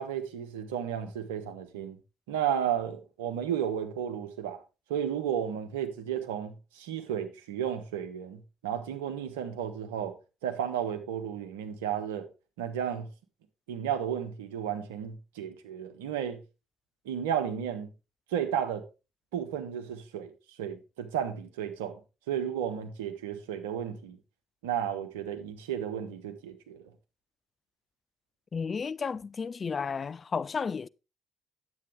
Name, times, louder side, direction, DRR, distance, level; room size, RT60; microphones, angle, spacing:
voice 1, 0.0-2.0 2.3-4.6 4.9-10.2 10.4-12.3 12.6-13.1 13.7-16.4 17.0-17.9 18.3-18.8 19.3-20.3 20.6-22.0 22.3-24.2 24.6-26.8, right 9 dB, 80° right, 1.1 m, -33 dB
voice 2, 28.5-30.9, left 5 dB, 40° left, 0.4 m, -32 dB
9.7 x 8.0 x 3.6 m
hypercardioid pair, 50°, 0 cm